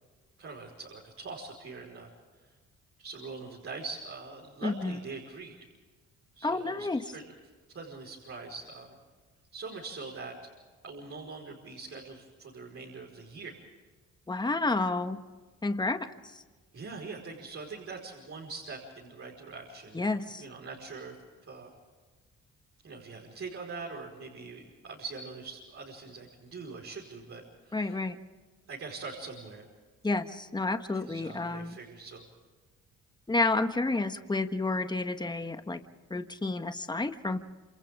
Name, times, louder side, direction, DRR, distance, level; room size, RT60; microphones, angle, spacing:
voice 1, 0.4-2.1 3.0-5.5 6.3-7.3 7.7-9.0 9.5-10.4 10.8-13.6 16.7-21.1 21.5-21.7 22.8-28.0 28.7-29.6 30.9-32.2, right 4 dB, 50° right, -3 dB, 5.0 m, -43 dB
voice 2, 4.6-5.0 6.4-7.0 14.3-15.2 15.6-16.4 19.9-20.4 27.7-28.2 30.0-31.8 33.3-35.8 36.1-37.4, left 3 dB, 15° left, 8 dB, 1.4 m, -30 dB
28.0 x 27.5 x 3.7 m, 1.4 s
cardioid pair, 90°, 30 cm